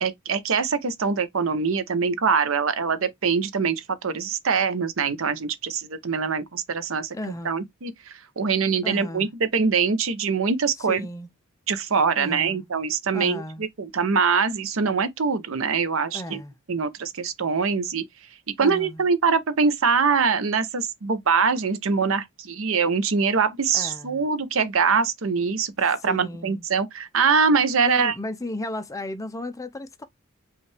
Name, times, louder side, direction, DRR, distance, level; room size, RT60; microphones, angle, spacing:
voice 1, 0.0-7.2 7.4-11.1 11.7-16.4 16.7-18.0 18.6-28.2, right 5 dB, 70° right, 0.7 m, -23 dB
voice 2, 7.1-7.7 8.8-9.3 10.8-11.3 12.2-12.7 13.1-13.7 16.1-16.6 18.6-19.0 23.7-24.3 26.1-26.7 27.8-30.0, left 1 dB, 15° left, 0.5 m, -34 dB
5.3 x 2.4 x 3.2 m
head